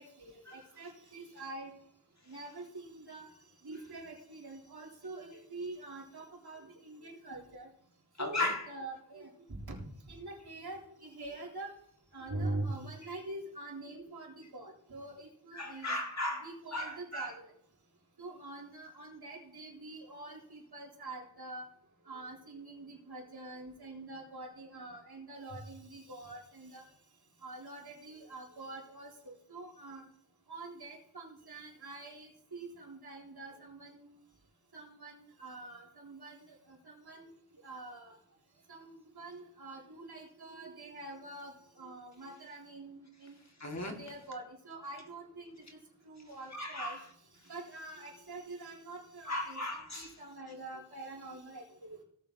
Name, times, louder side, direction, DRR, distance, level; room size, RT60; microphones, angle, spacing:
voice 1, 0.0-1.7 2.3-3.3 3.6-7.7 8.2-9.3 9.7-9.8 10.1-11.7 12.1-15.9 16.4-17.4 18.2-21.7 22.1-26.8 27.4-30.1 30.5-34.0 34.7-37.3 37.6-38.2 38.7-43.3 44.0-45.8 46.0-47.0 47.5-49.6 49.9-52.0, right 2 dB, 55° right, -3 dB, 3.7 m, -45 dB
voice 2, 8.2-8.7 13.0-13.1 15.5-17.3 43.6-44.0 46.5-47.0 49.3-50.2, left 1 dB, 35° left, 2 dB, 2.2 m, -36 dB
17.5 x 7.3 x 2.9 m, 0.70 s
cardioid pair, 60°, 45 cm